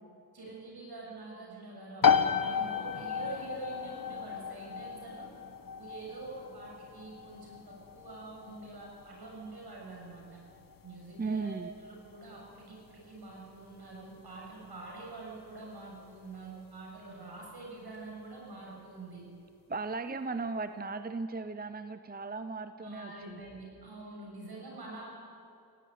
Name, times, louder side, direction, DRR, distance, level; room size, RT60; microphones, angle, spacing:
voice 1, 0.3-5.3 5.8-10.4 10.8-19.2 20.0-20.1 22.8-25.1, right 2 dB, 70° right, -2 dB, 7.4 m, -46 dB
sound 1, 2.0-16.5, left 6 dB, 55° left, 1.1 m, -34 dB
voice 2, 11.2-11.7 19.7-23.4, right 4 dB, 25° right, 10 dB, 0.7 m, -36 dB
19.0 x 16.5 x 9.4 m, 2.6 s
wide cardioid pair, 90°, 40 cm